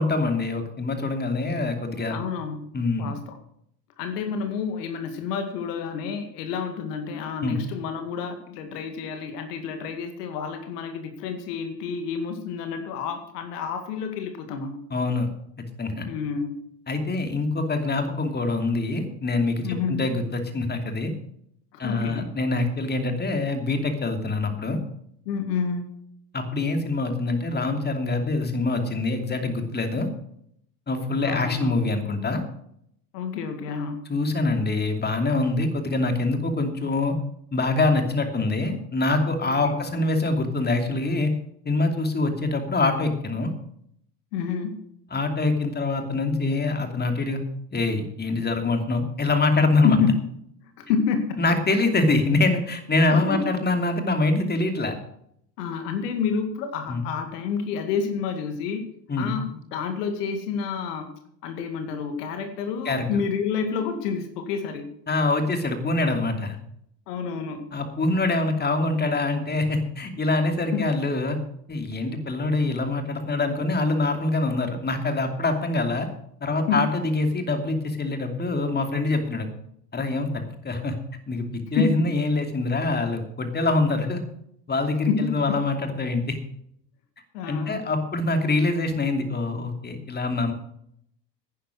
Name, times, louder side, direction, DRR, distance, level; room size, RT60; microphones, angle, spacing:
voice 1, 0.0-2.2 2.7-3.1 7.4-7.6 14.9-15.3 15.8-16.0 16.9-21.1 21.8-24.8 26.3-30.1 30.9-32.4 34.1-37.2 37.5-41.3 41.6-43.5 45.1-47.4 47.7-50.0 51.4-55.0 56.9-57.0 59.1-59.3 62.8-63.0 65.1-66.6 67.7-71.4 71.7-76.1 76.4-79.5 79.9-80.9 81.3-84.2 84.7-86.4 87.5-90.5, left 2 dB, 20° left, 6 dB, 2.8 m, -24 dB
voice 2, 2.1-2.7 3.0-3.3 4.0-14.8 16.1-16.7 19.6-20.1 21.7-22.3 25.3-25.9 31.2-31.7 33.1-34.1 39.4-39.9 44.3-44.8 49.8-50.1 50.8-51.4 53.1-53.5 55.6-58.8 59.2-61.1 61.4-64.9 67.1-67.7 70.7-70.8 76.7-76.9 81.8-82.1 85.1-85.6 87.3-87.8, left 6 dB, 65° left, 6 dB, 2.2 m, -29 dB
10.5 x 10.5 x 6.4 m, 0.70 s
hypercardioid pair, 75°, 50 cm